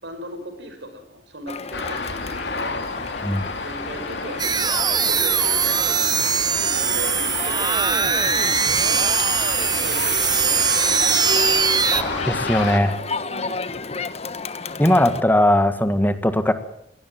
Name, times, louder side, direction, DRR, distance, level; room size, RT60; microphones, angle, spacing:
voice 1, 0.0-2.8 3.6-4.7 5.0-6.3 6.6-9.0 9.7-11.2 13.3-13.8, right 1 dB, 80° right, 7 dB, 5.4 m, -38 dB
Crowd, 1.5-15.2, left 3 dB, 40° left, 1.2 m, -33 dB
sound 1, 1.7-12.8, left 3 dB, 80° left, 3.4 m, -30 dB
sound 2, 4.4-12.0, right 6 dB, 25° right, 0.8 m, -21 dB
voice 2, 11.9-12.9 14.8-16.5, left 1 dB, 10° left, 10 dB, 1.7 m, -19 dB
22.5 x 18.0 x 7.7 m, 0.73 s
head